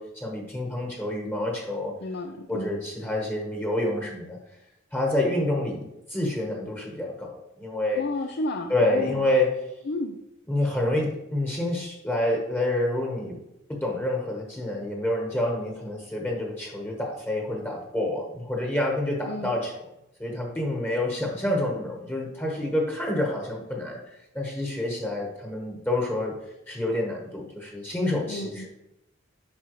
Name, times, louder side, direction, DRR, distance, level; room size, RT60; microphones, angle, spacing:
voice 1, 0.0-1.9 2.5-4.4 4.9-5.8 6.1-8.0 8.7-9.5 10.5-13.4 13.7-19.7 20.2-24.0 24.3-26.4 26.7-28.7, left 1 dB, 10° left, -1 dB, 1.1 m, -28 dB
voice 2, 2.0-2.7 8.0-9.3 9.9-10.2 19.3-19.5 28.3-28.7, left 2 dB, 60° left, 5 dB, 0.5 m, -32 dB
8.6 x 5.6 x 3.1 m, 0.88 s
head